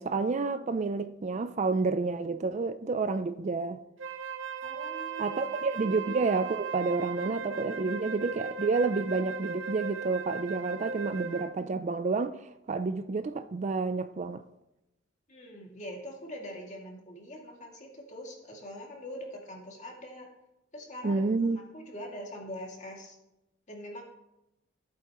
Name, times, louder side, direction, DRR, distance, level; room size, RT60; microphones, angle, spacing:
voice 1, 0.0-3.8 5.2-12.4 12.7-14.4 21.0-21.6, right 4 dB, 35° right, 0.4 m, -29 dB
Wind instrument woodwind instrument, 4.0-11.6, right 5 dB, 80° right, 0.9 m, -37 dB
voice 2, 4.6-5.4 7.0-7.2 15.3-20.3 20.7-23.2 23.7-24.0, equal, 40° left, 2.3 m, -43 dB
14.5 x 8.5 x 3.0 m
head